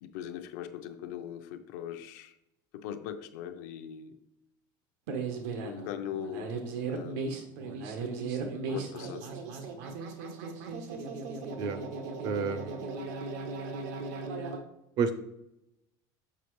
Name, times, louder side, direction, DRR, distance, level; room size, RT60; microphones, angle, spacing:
voice 1, 0.0-2.3 2.7-4.2 5.6-6.6 6.9-7.6 8.6-9.3, left 9 dB, 85° left, 8 dB, 0.6 m, -40 dB
sound 1, 5.1-14.6, right 4 dB, 85° right, 1.0 m, -37 dB
voice 2, 12.2-12.9 15.0-15.1, right 5 dB, 40° right, 11 dB, 0.5 m, -30 dB
6.8 x 5.1 x 3.1 m, 0.86 s
cardioid pair, 175°, 10 cm